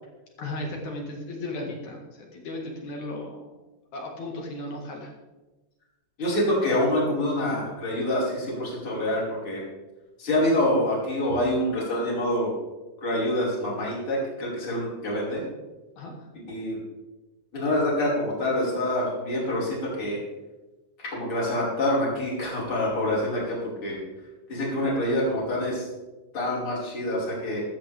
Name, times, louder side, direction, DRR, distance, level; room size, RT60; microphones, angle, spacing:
voice 1, 0.4-3.5 3.9-5.1 16.0-16.3, left 1 dB, 55° left, 1 dB, 2.4 m, -35 dB
voice 2, 6.2-9.6 10.2-12.5 13.0-15.4 16.3-16.8 17.5-20.2 21.1-24.0 24.5-25.9 26.3-27.6, left 1 dB, 30° left, -6 dB, 5.7 m, -26 dB
14.5 x 13.0 x 3.5 m, 1.1 s
omnidirectional pair, 5.5 m